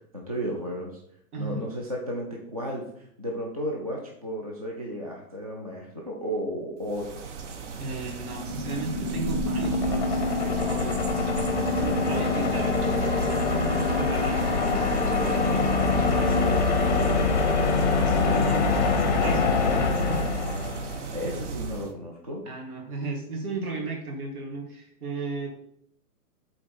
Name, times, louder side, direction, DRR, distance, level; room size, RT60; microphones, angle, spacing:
voice 1, 0.1-0.9 1.4-7.2 15.9-17.6 21.1-22.4, equal, 25° right, -1 dB, 0.4 m, -34 dB
voice 2, 1.3-1.7 7.8-11.3 11.7-15.3 18.1-20.3 22.5-25.5, right 3 dB, 70° right, 1 dB, 2.5 m, -35 dB
sound 1, 6.8-21.9, right 5 dB, 50° right, 0.9 m, -36 dB
sound 2, 8.0-21.2, left 3 dB, 30° left, 0.6 m, -24 dB
7.8 x 3.9 x 4.2 m, 0.69 s
hypercardioid pair, 180°, 46 cm